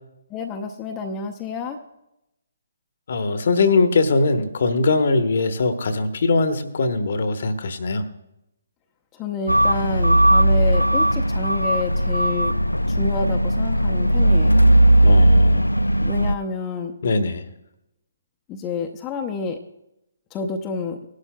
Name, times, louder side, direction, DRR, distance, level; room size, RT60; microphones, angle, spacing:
voice 1, 0.3-1.8 9.1-12.5 12.9-14.7 16.0-16.9 18.5-19.6 20.3-21.0, left 4 dB, 20° left, 3 dB, 0.7 m, -29 dB
voice 2, 3.1-8.0 15.0-15.7 17.0-17.4, left 3 dB, 50° left, 9 dB, 1.1 m, -21 dB
sound 1, 9.5-16.4, right 1 dB, 85° left, 0.4 m, -17 dB
18.5 x 11.5 x 2.3 m, 0.86 s
figure-of-eight pair, 135°, 0 cm